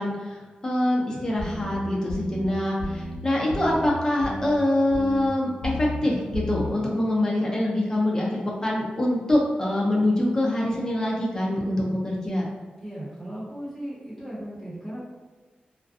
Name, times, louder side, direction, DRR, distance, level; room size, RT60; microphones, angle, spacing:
voice 1, 0.0-12.4, left 1 dB, 20° left, -4 dB, 0.6 m, -24 dB
sound 1, 1.4-1.7 2.1-2.4 2.8-3.1 3.5-3.9 4.2-4.6 4.9-5.3 5.6-6.0 6.3-6.7, left 1 dB, 70° left, 0.7 m, -32 dB
voice 2, 12.8-15.0, right 1 dB, 5° right, -10 dB, 1.1 m, -36 dB
2.4 x 2.2 x 2.6 m, 1.3 s
wide cardioid pair, 105°, 3 cm